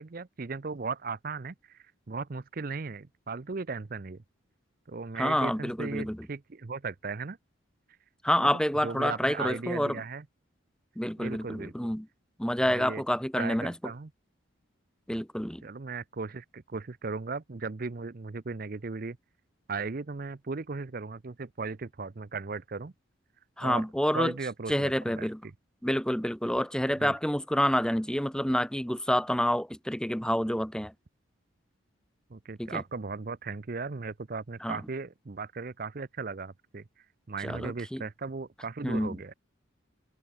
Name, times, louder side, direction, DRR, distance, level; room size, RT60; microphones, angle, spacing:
voice 1, 0.0-4.2 4.9-7.4 8.4-10.2 11.2-11.9 12.7-13.0 13.4-14.1 15.6-19.2 19.7-22.9 23.6-23.9 24.1-25.5 27.0-27.2 32.3-39.3, right 4 dB, 45° right, 0.6 m, -37 dB
voice 2, 5.2-6.3 8.2-9.9 11.0-12.1 12.4-13.7 15.1-15.6 23.6-24.3 24.7-25.4 25.8-30.9 32.6-32.8 34.6-34.8 37.4-38.0 38.8-39.1, equal, 5° left, 1.1 m, -28 dB
head